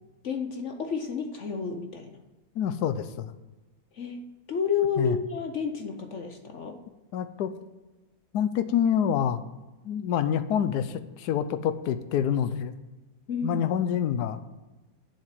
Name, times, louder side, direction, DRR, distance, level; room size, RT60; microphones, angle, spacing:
voice 1, 0.2-2.2 3.9-6.8 13.3-13.6, left 6 dB, 55° left, 5 dB, 1.0 m, -31 dB
voice 2, 2.5-3.3 5.0-5.2 7.1-7.5 8.3-9.4 9.8-12.7 13.4-14.4, left 9 dB, 80° left, 11 dB, 1.2 m, -27 dB
7.5 x 7.4 x 7.6 m, 1.1 s
omnidirectional pair, 1.7 m